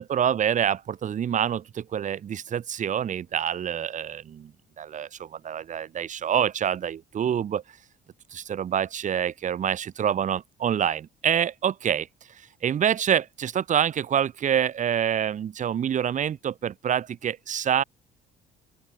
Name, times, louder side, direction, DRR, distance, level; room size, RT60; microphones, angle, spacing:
voice 1, 0.0-4.5 4.8-7.6 8.3-12.1 12.6-17.8, right 9 dB, 45° right, 2.7 m, -26 dB
open air
cardioid pair, 110°, 17 cm